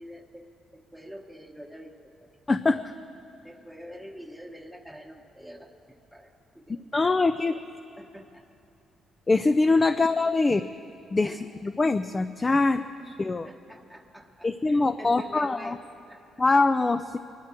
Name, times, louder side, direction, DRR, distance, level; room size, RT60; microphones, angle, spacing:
voice 1, 0.0-1.9 2.2-2.3 3.4-5.7 6.1-6.3 6.5-7.6 8.0-8.4 9.9-10.1 11.2-11.7 12.6-15.8 16.1-16.2, equal, 5° left, 2 dB, 1.1 m, -46 dB
voice 2, 2.5-2.9 6.9-7.5 9.3-10.6 11.1-11.3 11.6-12.8 13.2-13.5 14.4-15.8 16.4-17.2, left 3 dB, 25° left, 11 dB, 0.4 m, -23 dB
22.5 x 12.0 x 4.5 m, 2.5 s
cardioid pair, 90°, 0 cm